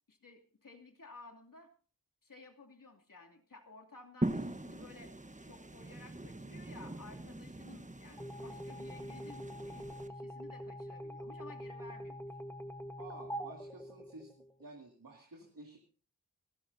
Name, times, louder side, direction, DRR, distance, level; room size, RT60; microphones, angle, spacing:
voice 1, 0.1-1.7 2.2-5.1 5.4-12.2, left 3 dB, 65° left, 1 dB, 2.8 m, -55 dB
sound 1, 4.2-10.1, right 1 dB, 20° right, 1.2 m, -41 dB
sound 2, 8.2-14.7, equal, 5° left, 1.4 m, -44 dB
voice 2, 13.0-14.3 14.6-15.8, right 2 dB, 70° right, 1 dB, 2.4 m, -52 dB
25.0 x 14.0 x 2.7 m, 0.39 s
cardioid pair, 40°, 35 cm